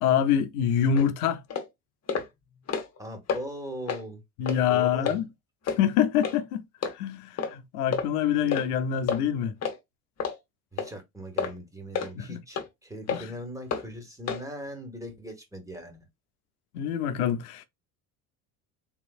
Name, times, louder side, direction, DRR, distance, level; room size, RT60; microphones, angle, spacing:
voice 1, 0.0-1.4 4.4-5.3 5.8-6.6 6.9-9.5 12.2-12.4 13.1-13.3 16.7-17.6, left 9 dB, 80° left, 0.7 m, -25 dB
sound 1, 0.9-1.1 1.5-1.7 2.1-2.3 2.6-3.0 3.3-3.4 3.9-4.0 4.5-4.6 5.0-5.2 5.7-5.8 6.2-6.4 6.8-6.9 7.4-7.5 7.9-8.1 8.5-8.7 9.1-9.2 9.6-9.8 10.2-10.4 10.8-10.9 11.4-11.5 11.9-12.1 12.5-12.7 13.1-13.2 13.7-13.8 14.3-14.4, left 6 dB, 35° left, 1.2 m, -29 dB
voice 2, 3.0-4.2 4.7-5.3 10.7-16.0, equal, 5° right, 1.6 m, -40 dB
3.8 x 3.1 x 2.4 m
hypercardioid pair, 75°, 44 cm